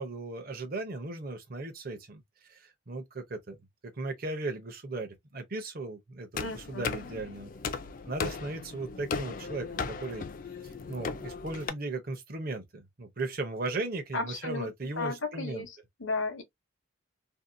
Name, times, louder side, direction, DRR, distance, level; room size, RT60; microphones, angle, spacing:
voice 1, 0.0-2.2 2.5-3.6 3.8-7.8 8.1-10.3 10.6-15.7, right 2 dB, 45° right, 0.7 m, -37 dB
sound 1, 6.3-11.7, left 5 dB, 40° left, 0.3 m, -37 dB
voice 2, 6.4-7.0 14.1-14.7 15.0-16.4, left 3 dB, 70° left, 0.8 m, -34 dB
2.7 x 2.1 x 2.5 m
head